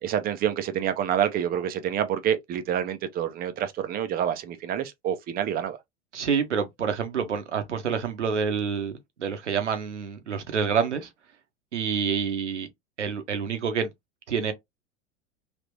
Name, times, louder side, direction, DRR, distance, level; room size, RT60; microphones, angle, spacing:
voice 1, 0.0-5.8, right 9 dB, 25° right, 0.7 m, -27 dB
voice 2, 6.1-11.1 11.7-12.7 13.0-13.9 14.3-14.5, right 6 dB, 75° right, 1.0 m, -27 dB
3.5 x 2.9 x 2.9 m
figure-of-eight pair, 85°, 36 cm